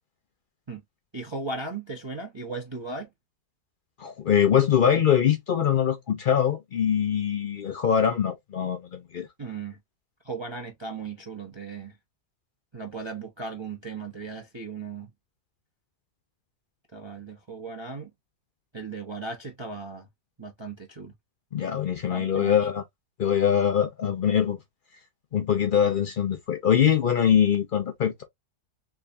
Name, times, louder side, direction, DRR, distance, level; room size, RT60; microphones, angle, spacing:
voice 1, 1.1-3.1 9.4-9.8 10.2-12.0 12.7-15.1 16.9-18.1 18.7-20.1 20.4-21.1 22.1-22.5, right 4 dB, 30° right, 0.5 m, -37 dB
voice 2, 4.0-9.3 21.5-22.8 23.2-24.6 25.3-28.2, left 8 dB, 75° left, 0.4 m, -23 dB
3.5 x 3.4 x 2.5 m
omnidirectional pair, 1.7 m